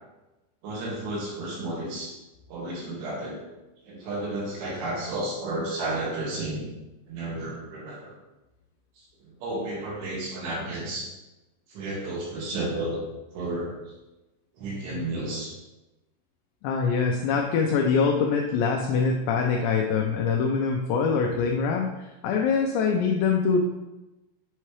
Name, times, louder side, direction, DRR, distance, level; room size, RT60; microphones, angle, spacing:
voice 1, 0.6-2.1 2.5-3.4 3.9-6.6 7.1-8.1 9.0-11.1 11.7-13.0 13.3-13.9 14.5-15.5, right 2 dB, 65° right, -5 dB, 3.7 m, -32 dB
voice 2, 16.6-23.6, left 5 dB, 85° left, 1 dB, 2.5 m, -24 dB
9.9 x 5.6 x 3.2 m, 1.0 s
omnidirectional pair, 5.7 m